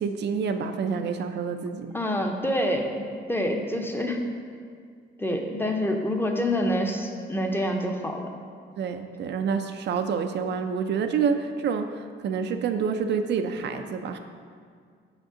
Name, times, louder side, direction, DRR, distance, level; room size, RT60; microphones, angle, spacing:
voice 1, 0.0-1.9 8.8-14.2, right 6 dB, 60° right, 7 dB, 0.4 m, -28 dB
voice 2, 1.9-4.2 5.2-8.3, equal, 10° left, 3 dB, 0.6 m, -27 dB
5.8 x 5.1 x 3.7 m, 2.1 s
cardioid pair, 90°, 20 cm